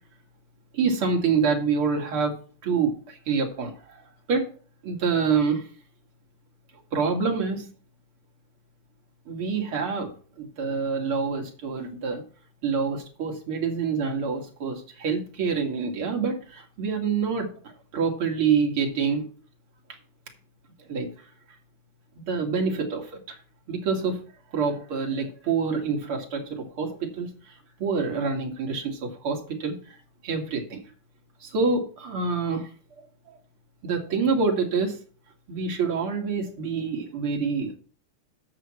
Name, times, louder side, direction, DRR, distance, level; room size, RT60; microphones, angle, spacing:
voice 1, 0.7-2.3 2.6-4.5 4.8-5.7 6.9-7.7 9.3-12.2 12.6-19.3 20.9-21.1 22.2-23.4 23.7-24.2 24.5-30.0 30.2-30.8 31.4-32.7 33.3-33.4 33.8-35.0 35.5-37.8, right 5 dB, 80° right, 1 dB, 2.9 m, -27 dB
10.5 x 4.5 x 7.6 m, 0.42 s
omnidirectional pair, 2.3 m